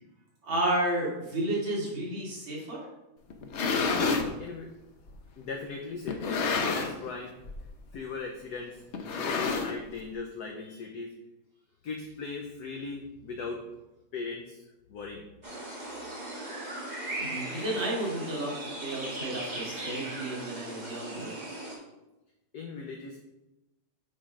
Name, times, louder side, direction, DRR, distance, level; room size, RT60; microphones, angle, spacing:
voice 1, 0.4-2.9 17.2-21.3, right 1 dB, 65° right, -5 dB, 3.0 m, -32 dB
sound 1, 3.3-4.3 5.1-5.2 6.1-7.1 7.4-7.7 7.9-8.0 8.9-10.0, left 4 dB, 90° left, 0.6 m, -29 dB
voice 2, 4.4-4.7 5.4-7.4 7.9-11.1 11.8-13.7 14.1-14.6 14.9-15.2 22.5-23.2, left 4 dB, 65° left, 2 dB, 1.1 m, -38 dB
sound 2, 15.4-21.8, right 1 dB, 20° right, 1.9 m, -38 dB
8.4 x 3.8 x 5.0 m, 0.99 s
omnidirectional pair, 2.3 m